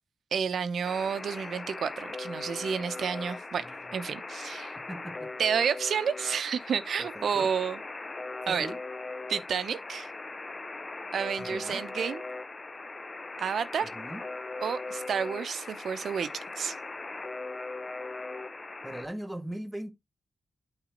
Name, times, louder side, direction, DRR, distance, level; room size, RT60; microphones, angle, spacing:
voice 1, 0.3-4.7 5.4-7.8 8.5-8.7 9.3-10.1 11.1-12.2 13.4-13.9 14.6-16.3 16.6-16.8, right 7 dB, 70° right, 0.8 m, -30 dB
Alarm, 0.8-19.1, left 3 dB, 35° left, 0.6 m, -39 dB
voice 2, 3.6-3.9 4.9-5.3 7.0-7.5 8.4-8.8 11.4-11.8 13.9-14.2 18.8-19.9, right 1 dB, 10° right, 1.5 m, -40 dB
9.0 x 4.0 x 3.9 m
supercardioid pair, 50°, 0 cm